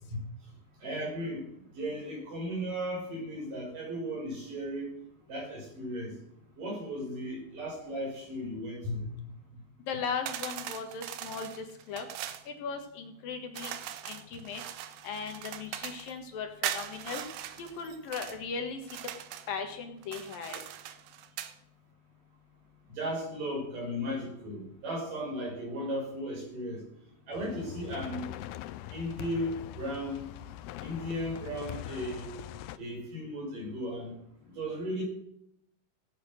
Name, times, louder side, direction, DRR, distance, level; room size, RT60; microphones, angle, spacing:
voice 1, 0.8-1.5 1.7-4.9 5.3-6.1 6.6-9.2 22.9-26.8 27.3-28.3 28.9-30.3 30.8-32.3 32.7-34.2 34.5-35.0, equal, 55° right, -1 dB, 7.2 m, -36 dB
voice 2, 9.9-12.1 12.5-13.7 14.0-14.6 15.0-17.2 17.6-19.0 19.5-20.6, left 5 dB, 70° left, 5 dB, 3.2 m, -37 dB
sound 1, 10.3-12.5 13.5-16.1 16.6-18.4 18.8-19.5 20.0-21.6, right 11 dB, 80° right, 2.7 m, -40 dB
sound 2, 27.3-32.8, left 14 dB, 85° left, 2.6 m, -42 dB
17.0 x 9.3 x 6.4 m, 0.75 s
omnidirectional pair, 4.4 m